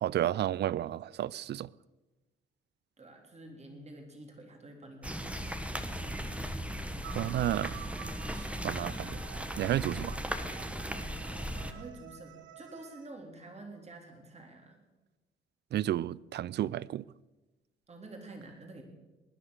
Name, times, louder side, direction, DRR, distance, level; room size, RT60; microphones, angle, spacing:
voice 1, 0.0-1.7 7.1-7.8 8.3-9.2 9.6-10.2 15.7-17.0, right 12 dB, 60° right, 0.4 m, -32 dB
voice 2, 3.0-5.8 11.6-14.8 17.9-18.8, right 2 dB, 35° right, 3.6 m, -49 dB
sound 1, 5.0-11.7, equal, 5° right, 1.4 m, -37 dB
sound 2, 7.0-13.1, right 9 dB, 75° right, 1.1 m, -50 dB
20.0 x 10.0 x 6.5 m
cardioid pair, 90°, 20 cm